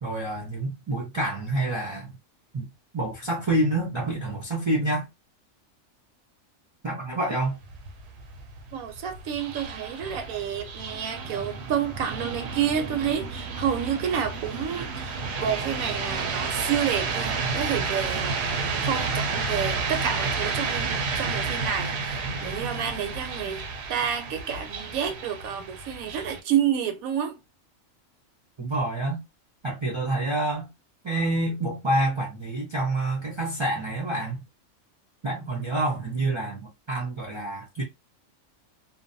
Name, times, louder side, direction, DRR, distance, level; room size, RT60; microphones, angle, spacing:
voice 1, 0.0-2.2 2.5-2.7 2.9-5.1 6.8-7.6 28.6-29.2 29.6-30.7 31.0-34.4 35.2-37.8, right 2 dB, 35° right, 0.4 m, -27 dB
sound 1, 7.4-26.4, right 4 dB, 65° right, 0.8 m, -31 dB
voice 2, 8.7-27.4, right 8 dB, 90° right, 1.1 m, -29 dB
2.5 x 2.1 x 2.5 m
omnidirectional pair, 1.4 m